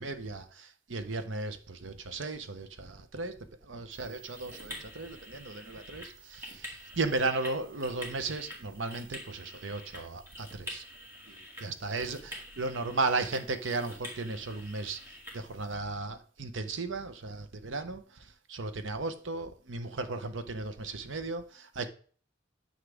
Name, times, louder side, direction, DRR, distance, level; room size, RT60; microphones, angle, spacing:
voice 1, 0.0-3.4 3.6-10.8 11.3-21.9, right 3 dB, 80° right, 0.9 m, -35 dB
sound 1, 3.9-15.7, equal, 15° right, 2.4 m, -47 dB
9.8 x 6.5 x 3.5 m
head